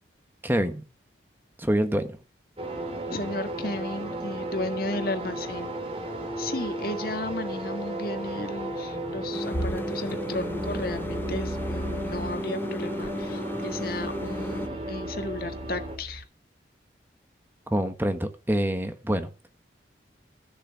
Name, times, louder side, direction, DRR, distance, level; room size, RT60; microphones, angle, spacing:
voice 1, 0.4-0.8 1.6-2.2 17.7-19.3, equal, 10° right, 1.3 m, -26 dB
sound 1, 2.6-16.0, right 1 dB, 30° right, 2.5 m, -34 dB
voice 2, 3.1-5.7 6.4-16.2, left 2 dB, 55° left, 1.7 m, -34 dB
sound 2, 9.3-14.7, left 1 dB, 10° left, 0.7 m, -35 dB
sound 3, 9.5-12.4 13.0-16.2, right 1 dB, 90° left, 3.5 m, -38 dB
14.5 x 6.7 x 6.0 m
head